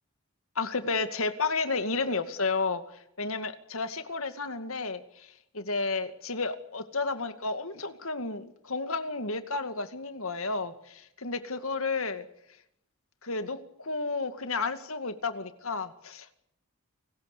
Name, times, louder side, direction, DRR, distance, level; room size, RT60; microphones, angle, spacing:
voice 1, 0.6-12.3 13.2-16.4, left 3 dB, 70° left, 9 dB, 2.3 m, -32 dB
29.5 x 19.5 x 6.8 m, 0.77 s
head